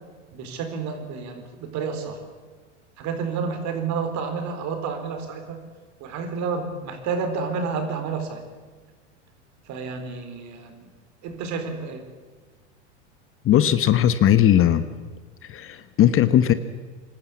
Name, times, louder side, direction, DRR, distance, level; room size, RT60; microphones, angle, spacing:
voice 1, 0.3-2.2 3.0-5.6 6.0-8.4 9.7-10.9 11.2-12.1, right 5 dB, 50° right, 6 dB, 4.2 m, -30 dB
voice 2, 13.4-14.8 15.4-16.5, left 11 dB, 35° left, 13 dB, 1.1 m, -18 dB
25.5 x 13.0 x 8.4 m, 1.4 s
hypercardioid pair, 100°, 37 cm